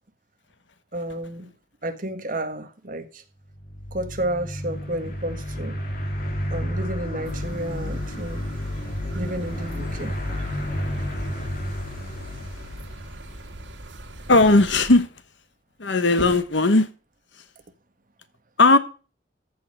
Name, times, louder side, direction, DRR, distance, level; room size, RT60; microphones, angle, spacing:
voice 1, 0.9-1.5 1.8-3.2 3.9-5.8 6.5-8.4 9.1-10.1, right 1 dB, 45° right, 1.7 m, -31 dB
sound 1, 3.5-13.8, left 1 dB, 50° left, 2.2 m, -31 dB
sound 2, 7.2-15.0, right 1 dB, 85° right, 2.2 m, -41 dB
voice 2, 14.3-15.1 15.8-16.9 18.6-18.8, left 2 dB, 75° left, 1.1 m, -17 dB
14.0 x 5.6 x 7.8 m
head